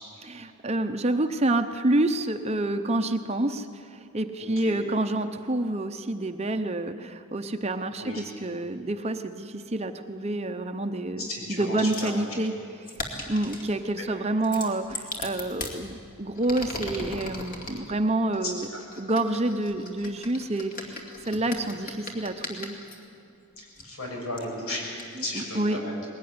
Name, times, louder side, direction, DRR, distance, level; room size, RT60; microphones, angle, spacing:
voice 1, 0.2-12.5 13.3-18.7 19.0-22.7 25.4-25.8, right 2 dB, 30° right, 7 dB, 0.8 m, -28 dB
voice 2, 4.4-4.8 8.0-8.2 11.2-12.1 14.0-14.1 18.4-18.5 23.6-24.9 25.2-25.9, left 1 dB, 80° left, -1 dB, 6.8 m, -34 dB
sound 1, 11.9-12.2 12.9-13.7 14.4-15.8 16.3-17.8 18.6-23.0 23.8-23.9 24.4-24.5 25.0-25.1, left 2 dB, 40° left, 2.4 m, -38 dB
20.5 x 18.5 x 9.6 m, 2.5 s
head